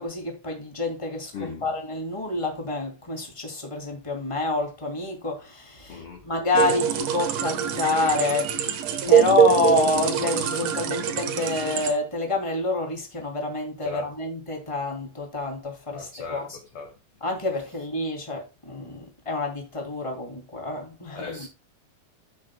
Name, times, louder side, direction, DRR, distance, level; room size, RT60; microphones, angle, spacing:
voice 1, 0.0-8.5 9.0-16.5 17.2-21.5, left 2 dB, 10° left, 2.2 m, -28 dB
voice 2, 1.3-1.7 5.9-6.3 13.8-14.1 15.9-16.9 21.1-21.5, left 4 dB, 55° left, 1.6 m, -38 dB
sound 1, 6.5-11.9, right 9 dB, 65° right, 2.3 m, -24 dB
15.0 x 6.4 x 2.3 m
omnidirectional pair, 4.6 m